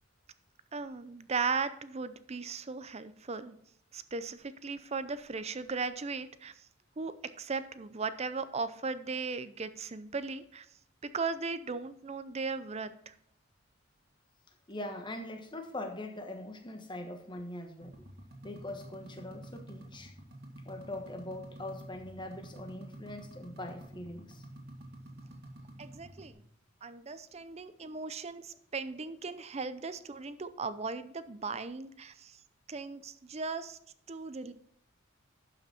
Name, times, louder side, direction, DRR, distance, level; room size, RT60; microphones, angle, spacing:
voice 1, 0.7-3.6 3.9-6.5 7.0-10.7 11.1-13.1 25.8-26.3 26.8-32.4 32.7-33.8 34.1-34.5, right 4 dB, 30° right, 13 dB, 0.5 m, -37 dB
voice 2, 14.7-18.0 18.4-20.1 20.6-24.4 27.3-27.4 28.9-29.0, left 1 dB, 25° left, 5 dB, 1.3 m, -42 dB
sound 1, 17.8-26.3, right 1 dB, 50° right, 2.0 m, -49 dB
12.0 x 5.8 x 4.3 m, 0.70 s
head